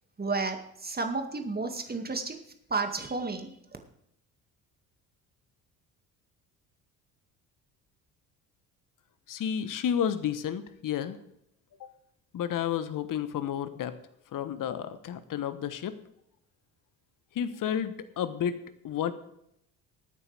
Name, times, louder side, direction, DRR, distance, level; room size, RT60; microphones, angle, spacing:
voice 1, 0.2-2.4 2.7-3.5, right 3 dB, 20° right, 5 dB, 2.2 m, -32 dB
voice 2, 9.3-11.2 11.8-11.9 12.3-13.9 14.3-15.9 17.3-19.1, left 9 dB, 40° left, 13 dB, 1.2 m, -31 dB
20.5 x 8.9 x 3.5 m, 0.77 s
figure-of-eight pair, 50°, 49 cm